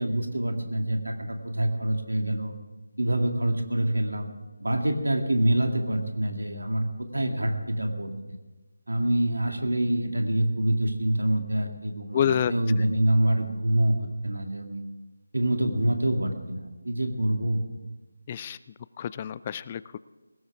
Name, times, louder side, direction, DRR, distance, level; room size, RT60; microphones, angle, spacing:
voice 1, 0.0-2.5 3.0-4.3 4.6-8.4 8.9-14.8 15.3-17.6, right 1 dB, 80° right, 4 dB, 2.4 m, -26 dB
voice 2, 12.1-12.5 18.3-18.6 19.0-20.0, left 9 dB, 25° left, 17 dB, 0.4 m, -27 dB
20.0 x 17.0 x 3.6 m, 1.2 s
figure-of-eight pair, 160°, 0 cm